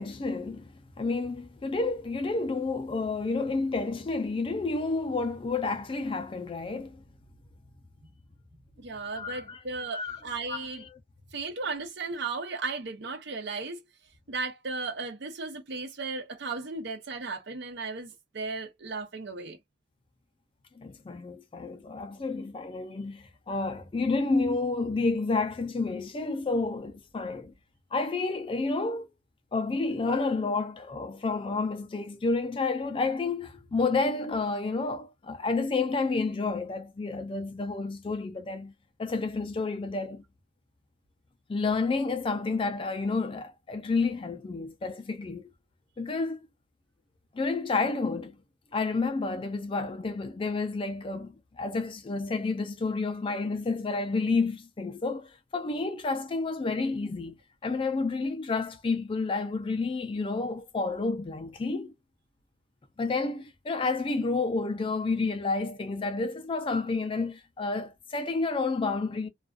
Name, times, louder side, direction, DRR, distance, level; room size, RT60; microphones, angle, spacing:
voice 1, 0.0-7.0 9.1-9.6 9.9-10.2 10.5-10.9 20.8-27.5 27.9-29.1 29.5-38.7 39.0-40.2 41.5-45.5 46.0-46.4 47.3-48.4 48.7-57.4 57.6-61.9 63.0-69.3, left 3 dB, 25° left, 0.3 m, -30 dB
voice 2, 8.8-10.8 11.3-13.8 14.3-19.6, right 4 dB, 60° right, 0.7 m, -35 dB
2.3 x 2.3 x 2.3 m
head